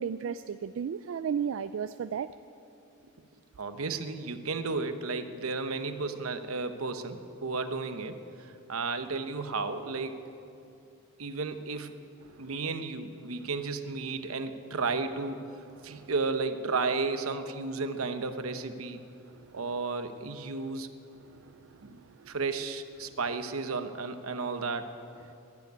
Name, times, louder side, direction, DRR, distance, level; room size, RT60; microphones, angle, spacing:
voice 1, 0.0-2.3 12.3-12.5 15.8-16.1 19.3-19.5 22.0-22.3, right 7 dB, 65° right, 12 dB, 0.3 m, -34 dB
voice 2, 3.6-10.2 11.2-12.0 12.4-19.0 19.5-20.9 21.8-22.0 22.3-24.9, right 4 dB, 80° right, 9 dB, 0.9 m, -33 dB
12.0 x 11.5 x 9.5 m, 2.7 s
head